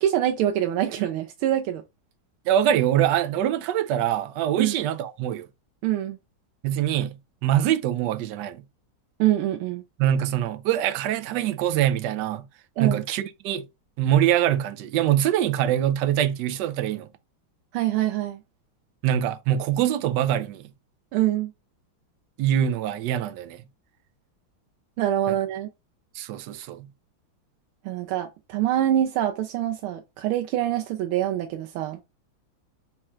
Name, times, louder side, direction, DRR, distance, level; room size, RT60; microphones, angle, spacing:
voice 1, 0.0-1.8 4.6-4.7 5.8-6.2 9.2-9.8 12.8-13.0 17.7-18.4 21.1-21.5 25.0-25.7 27.8-32.0, right 12 dB, 85° right, 1.5 m, -25 dB
voice 2, 2.5-5.5 6.6-7.2 7.4-8.6 10.0-12.4 12.8-13.7 14.0-17.1 19.0-20.6 22.4-23.6 25.3-25.4 26.1-26.9, right 11 dB, 70° right, 1.1 m, -24 dB
4.3 x 2.4 x 4.3 m
omnidirectional pair, 2.3 m